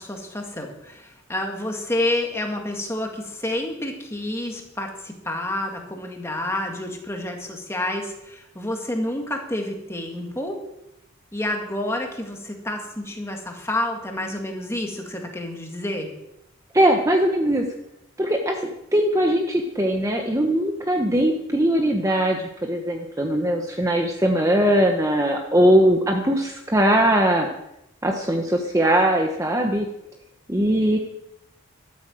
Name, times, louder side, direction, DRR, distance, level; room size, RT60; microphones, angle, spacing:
voice 1, 0.0-10.6 11.3-16.1, left 1 dB, 10° left, 2 dB, 2.0 m, -29 dB
voice 2, 16.7-17.6 18.2-27.5 28.0-29.9 30.5-31.0, right 1 dB, 15° right, 2 dB, 1.0 m, -20 dB
13.0 x 8.7 x 7.7 m, 0.84 s
head